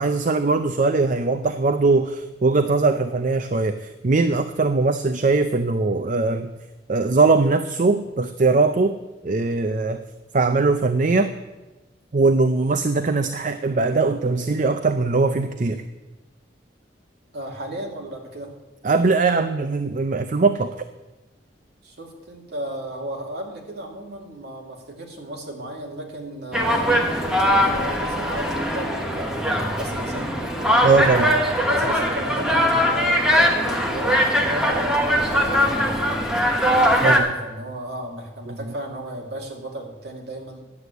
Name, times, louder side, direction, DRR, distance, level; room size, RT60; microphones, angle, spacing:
voice 1, 0.0-6.5 6.9-9.0 9.2-10.0 10.3-11.3 12.1-15.8 18.8-20.8 30.8-31.3 37.0-37.2 38.5-38.6, right 3 dB, 45° right, 9 dB, 0.5 m, -20 dB
voice 2, 17.3-18.5 21.8-30.3 31.7-40.6, right 1 dB, 60° right, 0 dB, 2.4 m, -34 dB
sound 1, 26.5-37.2, equal, 5° right, 1.4 m, -21 dB
11.0 x 8.0 x 8.2 m, 1.1 s
head